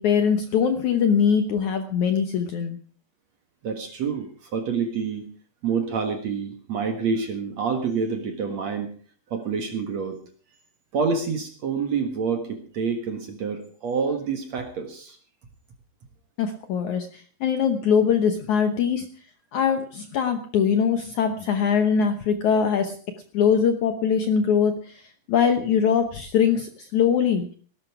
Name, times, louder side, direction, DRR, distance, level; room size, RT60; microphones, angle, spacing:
voice 1, 0.0-2.8 16.4-19.1 19.5-23.0 23.3-27.5, left 7 dB, 65° left, 7 dB, 1.9 m, -22 dB
voice 2, 3.6-5.2 5.6-8.9 9.3-10.2 10.9-15.2, right 5 dB, 55° right, 6 dB, 2.3 m, -27 dB
17.5 x 12.0 x 4.8 m, 0.43 s
omnidirectional pair, 4.7 m